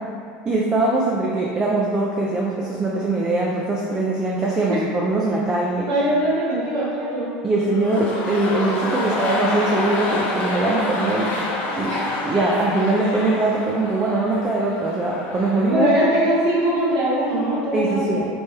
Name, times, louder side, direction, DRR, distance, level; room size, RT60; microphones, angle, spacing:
voice 1, 0.5-5.9 7.4-11.5 11.8-12.0 12.2-15.9 17.7-18.3, right 2 dB, 20° right, -3 dB, 0.4 m, -22 dB
voice 2, 5.9-7.3 11.9-12.1 15.7-18.2, right 1 dB, 75° right, -7 dB, 1.3 m, -21 dB
sound 1, 7.7-15.8 16.0-16.1, left 2 dB, 40° left, 0.7 m, -27 dB
4.3 x 3.3 x 3.3 m, 2.4 s
supercardioid pair, 135°, 4 cm